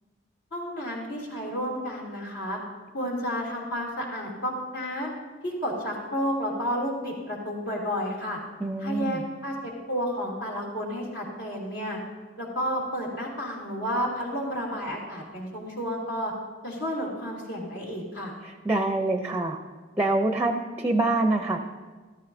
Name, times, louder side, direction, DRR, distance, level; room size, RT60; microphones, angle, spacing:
voice 1, 0.5-2.6 2.9-5.1 5.4-8.4 8.8-12.0 12.4-16.3 16.6-18.3, equal, 65° left, -3 dB, 2.8 m, -31 dB
voice 2, 8.6-9.2 18.4-19.6 20.0-21.6, right 2 dB, 10° right, 5 dB, 0.5 m, -25 dB
13.5 x 13.5 x 2.7 m, 1.4 s
head